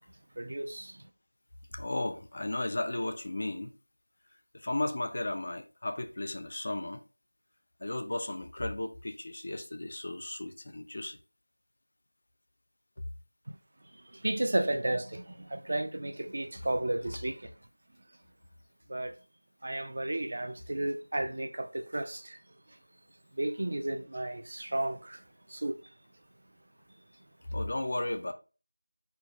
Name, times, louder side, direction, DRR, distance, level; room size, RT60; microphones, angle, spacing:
voice 1, 0.4-0.9 14.2-15.2 15.5-17.4 18.9-19.1 19.6-22.2 23.4-25.2 25.5-25.7, right 1 dB, 45° right, 0.5 m, -32 dB
voice 2, 1.7-3.7 4.5-7.0 7.8-11.2 27.5-28.3, left 1 dB, 40° left, 0.4 m, -34 dB
4.5 x 2.1 x 4.4 m
figure-of-eight pair, 175°, 0 cm